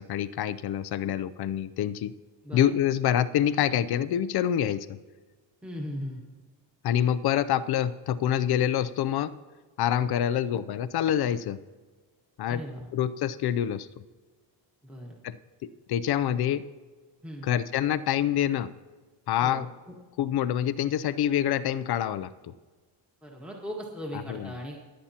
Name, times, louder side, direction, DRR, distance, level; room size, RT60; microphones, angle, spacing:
voice 1, 0.0-2.1 2.5-5.0 6.8-9.3 9.8-11.6 12.4-12.6 12.9-13.9 15.2-15.4 15.9-16.6 17.4-18.7 19.3-19.7 20.2-22.5 24.1-24.5, left 10 dB, 55° left, 15 dB, 0.6 m, -26 dB
voice 2, 2.4-2.8 5.6-6.2 12.5-12.9 14.8-15.2 17.2-17.5 19.4-19.7 23.2-24.8, equal, ahead, -1 dB, 1.6 m, -38 dB
26.0 x 8.7 x 2.9 m, 1.4 s
cardioid pair, 125°, 46 cm